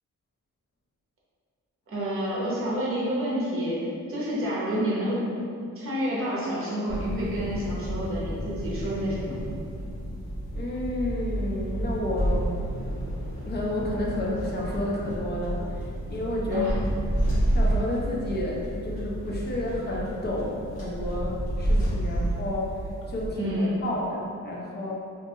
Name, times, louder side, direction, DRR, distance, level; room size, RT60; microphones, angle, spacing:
voice 1, 1.9-5.3 5.8-9.5 16.5-16.8 23.4-23.8, equal, 45° right, -6 dB, 0.7 m, -29 dB
sound 1, 6.9-23.3, right 1 dB, 50° left, 1.1 m, -30 dB
voice 2, 10.5-12.5 13.4-16.7 17.5-24.9, left 1 dB, 35° left, -4 dB, 0.4 m, -31 dB
2.5 x 2.3 x 2.7 m, 2.4 s
wide cardioid pair, 150°, 31 cm